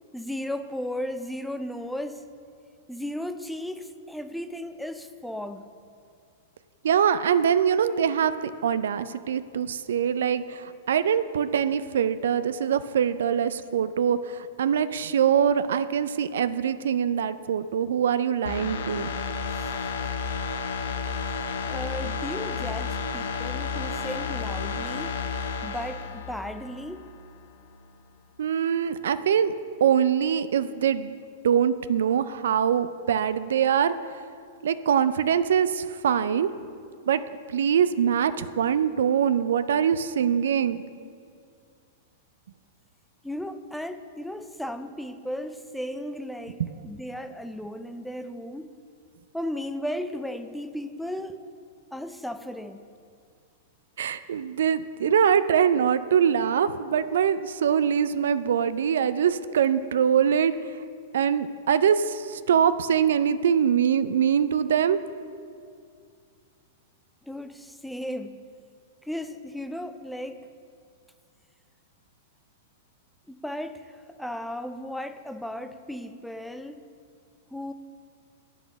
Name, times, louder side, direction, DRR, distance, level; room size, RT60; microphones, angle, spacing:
voice 1, 0.1-2.3 2.9-5.6 19.5-19.7 21.7-25.1 25.6-27.1 43.2-48.7 49.3-51.4 51.9-52.8 67.3-68.4 69.0-70.5 73.3-76.8 77.5-77.7, left 1 dB, ahead, 10 dB, 0.4 m, -35 dB
voice 2, 6.8-19.1 28.4-29.5 29.8-31.2 31.4-33.9 34.6-36.5 37.0-37.2 37.5-40.8 54.0-60.7 61.1-65.0, right 8 dB, 75° right, 13 dB, 0.3 m, -23 dB
sound 1, 18.5-27.1 27.5-27.6, left 5 dB, 75° left, 0.6 m, -31 dB
8.0 x 6.2 x 5.6 m, 2.3 s
hypercardioid pair, 115°, 0 cm